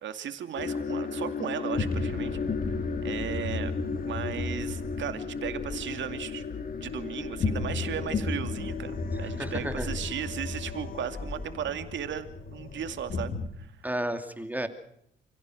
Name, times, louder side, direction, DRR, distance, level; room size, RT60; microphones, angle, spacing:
voice 1, 0.0-2.4 2.6-3.7 4.1-6.4 6.8-13.7, right 9 dB, 70° right, 8 dB, 2.5 m, -36 dB
sound 1, 0.6-13.5, left 4 dB, 45° left, 3.2 m, -33 dB
voice 2, 9.1-9.9 13.8-14.7, right 1 dB, 10° right, 7 dB, 2.7 m, -33 dB
29.0 x 17.0 x 6.5 m, 0.73 s
cardioid pair, 90°, 20 cm